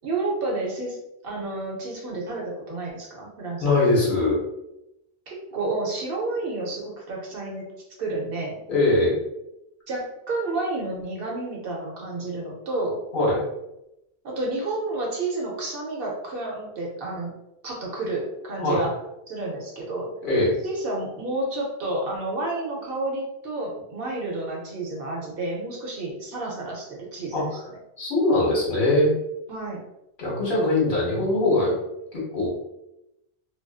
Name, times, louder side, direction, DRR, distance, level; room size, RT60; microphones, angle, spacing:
voice 1, 0.0-1.0 1.2-3.7 5.3-7.7 8.0-8.6 9.9-13.0 14.2-17.3 17.6-18.9 19.3-20.1 20.6-27.6 29.5-29.9, right 2 dB, 65° right, -2 dB, 0.8 m, -30 dB
voice 2, 3.6-4.4 8.7-9.2 13.1-13.4 18.6-18.8 20.2-20.6 27.3-27.5 28.0-29.1 30.2-31.8 32.1-32.5, left 2 dB, 55° left, -5 dB, 1.0 m, -21 dB
2.4 x 2.3 x 2.3 m, 0.87 s
omnidirectional pair, 1.1 m